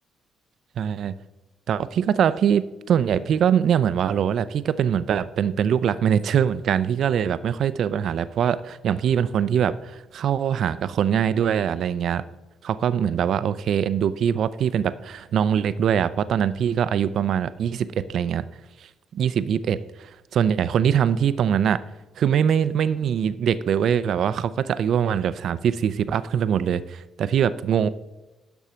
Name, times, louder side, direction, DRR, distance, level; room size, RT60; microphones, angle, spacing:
voice 1, 0.8-1.2 1.7-12.2 12.6-18.5 19.1-21.8 22.2-27.9, right 8 dB, 65° right, 15 dB, 0.4 m, -23 dB
10.5 x 6.1 x 4.4 m, 1.0 s
cardioid pair, 90°, 0 cm